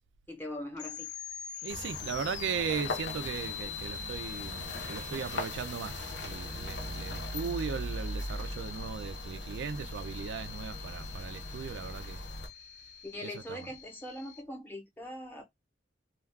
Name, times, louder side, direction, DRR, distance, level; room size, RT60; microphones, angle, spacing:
voice 1, 0.3-1.1 13.0-15.4, left 1 dB, 10° left, 0.8 m, -41 dB
sound 1, 0.7-14.4, left 8 dB, 40° left, 0.4 m, -44 dB
voice 2, 1.6-12.2 13.2-13.7, right 6 dB, 70° right, 0.3 m, -38 dB
sound 2, 1.7-12.5, left 1 dB, 65° left, 0.7 m, -40 dB
2.3 x 2.3 x 3.3 m
head